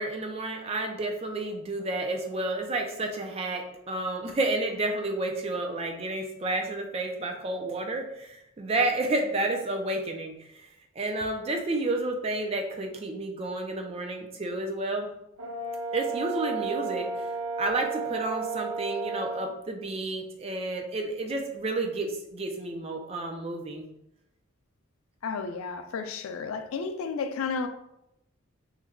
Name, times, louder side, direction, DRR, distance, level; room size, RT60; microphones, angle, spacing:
voice 1, 0.0-10.7 11.0-15.1 15.9-17.1 17.6-23.9, right 2 dB, 30° right, 0.3 m, -31 dB
Brass instrument, 15.4-19.5, right 4 dB, 90° right, 0.6 m, -33 dB
voice 2, 25.2-27.7, left 5 dB, 80° left, 0.3 m, -32 dB
3.1 x 2.2 x 3.5 m
head